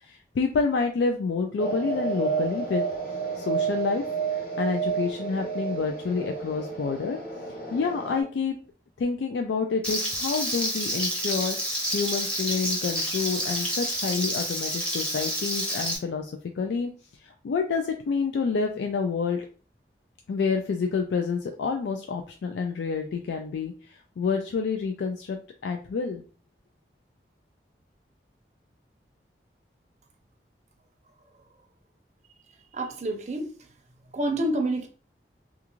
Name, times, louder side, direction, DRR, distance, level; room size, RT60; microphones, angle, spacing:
voice 1, 0.0-2.8 3.4-4.0 4.6-7.2 7.7-8.5 9.0-16.9 17.2-19.5 20.3-26.2, left 5 dB, 90° left, 4 dB, 0.3 m, -28 dB
sound 1, 1.6-8.2, right 5 dB, 50° left, 0.8 m, -30 dB
Frying (food), 9.8-16.0, equal, 5° left, 0.6 m, -29 dB
voice 2, 32.7-33.5 34.1-34.9, right 1 dB, 40° right, 4 dB, 0.5 m, -27 dB
2.4 x 2.4 x 2.9 m, 0.38 s
head